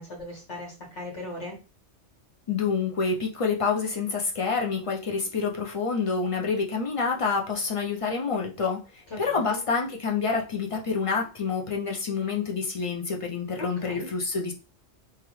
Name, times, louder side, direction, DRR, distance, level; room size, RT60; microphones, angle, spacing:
voice 1, 0.0-1.5 9.1-9.6 13.6-14.1, left 1 dB, 75° left, -2 dB, 1.7 m, -38 dB
voice 2, 2.5-14.5, left 5 dB, 55° left, 0 dB, 0.4 m, -28 dB
3.2 x 2.4 x 3.0 m, 0.33 s
omnidirectional pair, 1.2 m